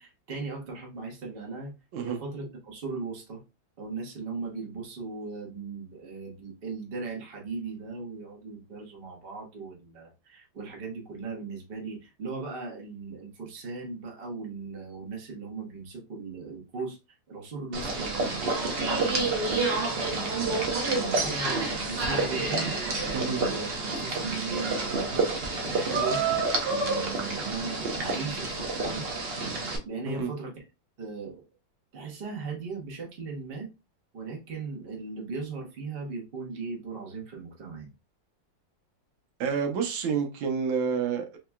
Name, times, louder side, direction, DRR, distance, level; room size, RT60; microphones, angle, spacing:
voice 1, 0.0-1.7 2.0-3.4 3.8-17.0 17.3-20.2 20.8-25.0 25.5-26.2 26.6-29.0 29.8-30.6 31.0-31.4 31.9-33.7 34.1-37.9, right 4 dB, 35° right, 1.1 m, -38 dB
sound 1, 17.7-29.8, right 3 dB, 70° right, 0.5 m, -28 dB
voice 2, 39.4-41.4, right 6 dB, 85° right, 1.5 m, -29 dB
4.6 x 2.8 x 2.2 m
omnidirectional pair, 2.1 m